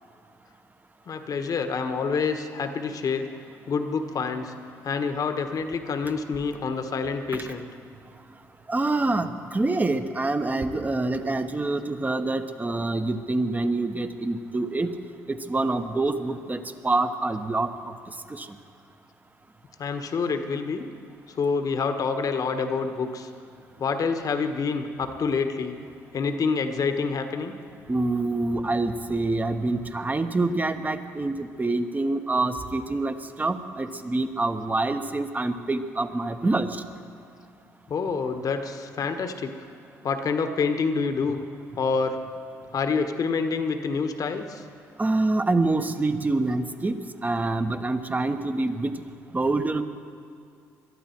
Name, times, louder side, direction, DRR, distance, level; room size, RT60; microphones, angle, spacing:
voice 1, 1.1-3.3 3.7-4.5 4.8-7.7 19.8-20.8 21.4-23.3 23.8-25.7 26.1-27.5 37.9-39.6 40.0-41.4 41.8-42.2 42.7-44.6, left 5 dB, 55° left, 7 dB, 1.4 m, -27 dB
voice 2, 8.7-15.0 15.3-17.7 18.3-18.5 27.9-36.8 45.0-49.0 49.3-49.8, right 2 dB, 25° right, 8 dB, 1.2 m, -26 dB
22.5 x 12.5 x 4.6 m, 2.4 s
hypercardioid pair, 55°, 7 cm